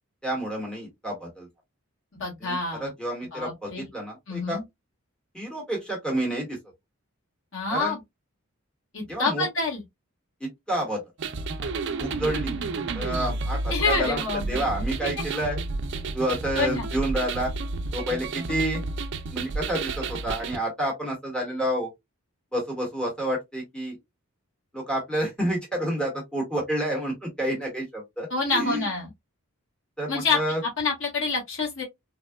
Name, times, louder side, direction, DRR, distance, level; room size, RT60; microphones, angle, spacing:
voice 1, 0.2-1.5 2.4-4.6 5.3-6.6 7.7-7.9 9.1-9.5 10.4-11.0 11.6-11.7 12.0-12.5 12.9-15.6 16.1-17.5 17.9-18.8 19.3-21.9 22.5-24.0 24.7-28.8 30.0-30.6, right 1 dB, 5° left, 1.1 m, -29 dB
voice 2, 2.1-2.9 3.3-3.9 4.3-4.6 7.5-8.0 8.9-9.8 13.7-14.7 15.0-15.1 16.6-16.9 28.3-29.1 30.1-30.4 30.8-31.8, left 3 dB, 60° left, 1.3 m, -27 dB
sound 1, 11.2-20.6, right 3 dB, 55° right, 0.4 m, -31 dB
3.5 x 2.2 x 2.2 m
head